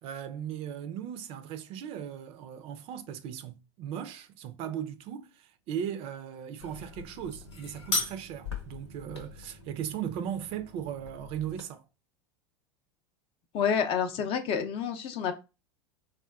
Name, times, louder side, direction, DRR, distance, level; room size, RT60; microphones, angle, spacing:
voice 1, 0.0-11.8, right 9 dB, 40° right, 0.4 m, -37 dB
sound 1, 6.6-11.6, left 3 dB, 80° left, 0.9 m, -38 dB
voice 2, 13.5-15.3, left 7 dB, 40° left, 0.6 m, -28 dB
3.6 x 2.4 x 2.3 m
figure-of-eight pair, 85°, 14 cm